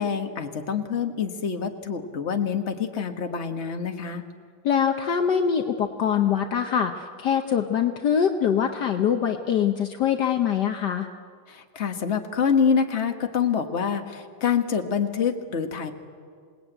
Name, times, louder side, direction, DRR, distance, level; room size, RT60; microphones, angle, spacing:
voice 1, 0.0-4.2 11.5-15.9, left 6 dB, 40° left, 5 dB, 1.7 m, -26 dB
voice 2, 4.6-11.1, left 8 dB, 65° left, 6 dB, 1.5 m, -23 dB
27.0 x 19.5 x 9.1 m, 2.1 s
omnidirectional pair, 2.0 m